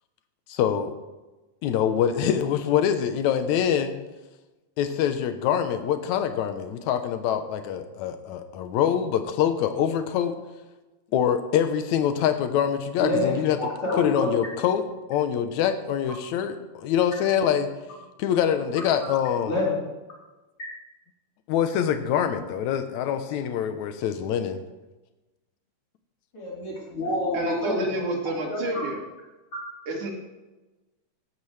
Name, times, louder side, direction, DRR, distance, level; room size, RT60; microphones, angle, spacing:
voice 1, 0.5-0.9 1.6-3.9 4.8-10.3 11.1-13.6 14.0-17.7 18.2-19.6 21.5-24.6, left 9 dB, 75° left, 8 dB, 2.2 m, -25 dB
voice 2, 13.0-14.3 19.5-19.8 26.3-27.9 28.5-28.9, left 2 dB, 45° left, -5 dB, 4.8 m, -27 dB
voice 3, 27.3-29.0 29.9-30.1, right 1 dB, 80° right, -1 dB, 3.9 m, -29 dB
17.0 x 12.5 x 3.3 m, 1.1 s
omnidirectional pair, 3.5 m